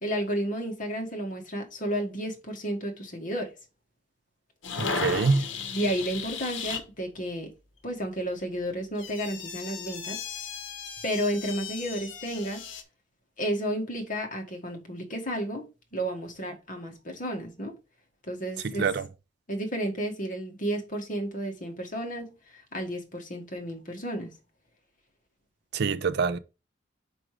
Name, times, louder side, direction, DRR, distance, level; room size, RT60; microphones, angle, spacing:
voice 1, 0.0-3.5 5.7-7.5 7.8-10.2 11.0-12.7 13.4-15.7 15.9-17.7 18.3-18.9 19.5-24.3, right 1 dB, 45° left, 1.5 m, -32 dB
sound 1, 4.6-6.8 9.0-12.8, left 5 dB, 80° left, 1.0 m, -35 dB
voice 2, 4.8-5.4 18.8-19.0 25.7-26.4, right 4 dB, 60° right, 0.4 m, -25 dB
5.0 x 4.9 x 4.6 m
head